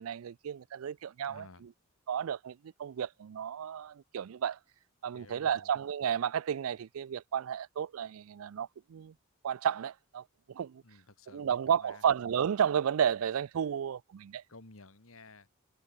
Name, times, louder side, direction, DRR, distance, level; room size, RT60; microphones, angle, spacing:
voice 1, 0.0-1.7 2.1-4.6 5.0-9.1 9.4-10.8 11.3-14.4, right 8 dB, 75° right, 0.4 m, -32 dB
voice 2, 1.3-1.6 5.1-5.7 10.8-12.0 14.5-15.5, left 3 dB, 75° left, 2.3 m, -54 dB
head